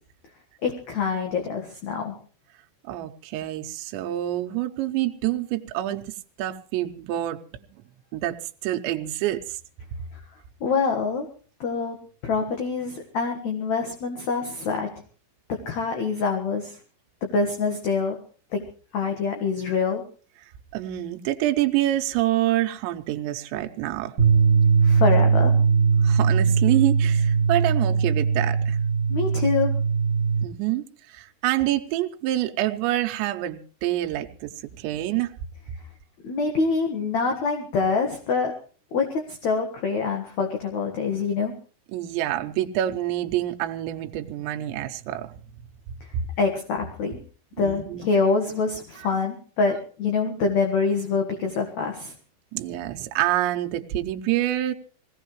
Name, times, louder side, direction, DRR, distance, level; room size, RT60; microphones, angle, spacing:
voice 1, 0.6-2.1 10.6-11.3 11.6-12.0 12.2-14.9 15.7-16.8 17.3-18.2 18.5-18.6 18.9-20.0 24.8-25.5 29.1-29.7 36.2-38.5 38.9-41.5 46.4-47.2 47.6-52.1, left 4 dB, 55° left, 3 dB, 2.2 m, -25 dB
voice 2, 2.8-6.1 6.4-7.4 8.1-8.4 8.6-9.6 20.7-24.1 26.0-28.8 30.4-35.3 41.9-45.3 46.1-46.2 47.6-48.1 52.5-54.7, right 14 dB, 80° right, 6 dB, 3.1 m, -27 dB
sound 1, 24.2-30.4, right 5 dB, 45° right, 2.5 m, -20 dB
23.5 x 17.5 x 3.1 m, 0.40 s
omnidirectional pair, 5.2 m